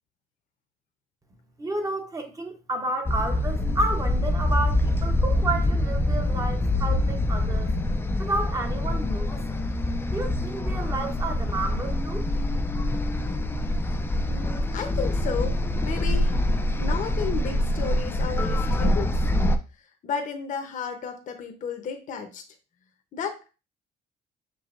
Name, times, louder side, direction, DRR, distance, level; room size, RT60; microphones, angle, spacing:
voice 1, 1.6-7.7 8.2-9.6 10.1-12.3, right 2 dB, 20° right, 0.8 m, -31 dB
sound 1, 3.1-19.6, left 1 dB, 15° left, 0.4 m, -25 dB
voice 2, 14.3-16.4 16.8-19.2 20.0-22.4 23.1-23.5, left 6 dB, 50° left, 0.8 m, -33 dB
6.2 x 2.9 x 2.5 m
cardioid pair, 110°, 17 cm